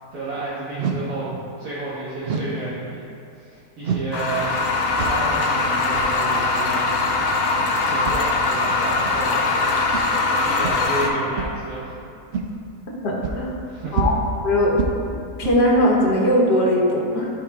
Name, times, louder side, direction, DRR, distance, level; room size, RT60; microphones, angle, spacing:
voice 1, 0.1-3.1 3.4-4.6 4.9-6.9 7.8-9.6 10.5-11.9 13.6-14.1, right 2 dB, 65° right, -11 dB, 1.9 m, -31 dB
sound 1, 0.8-1.1 2.2-2.6 3.8-4.2 5.0-5.3 5.9-6.1 7.2-7.4 8.0-8.2 9.0-9.1 9.9-10.0 10.6-10.8 11.4-11.6 12.3-12.5 13.2-13.4 14.0-14.3 14.8-15.1 15.4-15.6, right 4 dB, 85° right, 0.5 m, -26 dB
sound 2, 4.1-11.1, left 3 dB, 60° left, 1.0 m, -21 dB
voice 2, 13.0-13.5 13.9-14.1 14.4-14.8 15.1-17.3, equal, 90° left, -3 dB, 1.8 m, -19 dB
11.5 x 4.9 x 2.4 m, 2.5 s
omnidirectional pair, 1.7 m